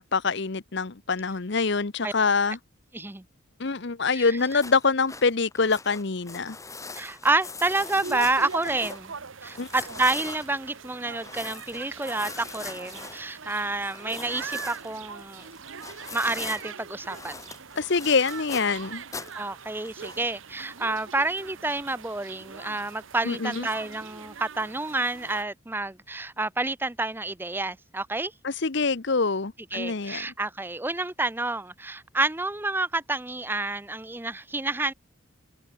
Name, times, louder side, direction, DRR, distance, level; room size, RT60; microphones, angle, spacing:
voice 1, 0.0-2.6 3.6-6.6 9.6-9.7 17.8-19.0 23.2-23.7 28.4-30.3, left 4 dB, 55° left, 0.9 m, -25 dB
voice 2, 2.9-3.2 4.1-4.4 6.9-9.1 9.4-15.5 16.1-17.4 19.4-28.3 29.7-34.9, right 2 dB, 10° right, 0.6 m, -29 dB
sound 1, 4.4-9.1 9.4-16.7 17.0-19.5 19.8-20.2, left 4 dB, 15° left, 5.8 m, -42 dB
sound 2, 7.6-25.4, right 5 dB, 70° right, 1.2 m, -42 dB
head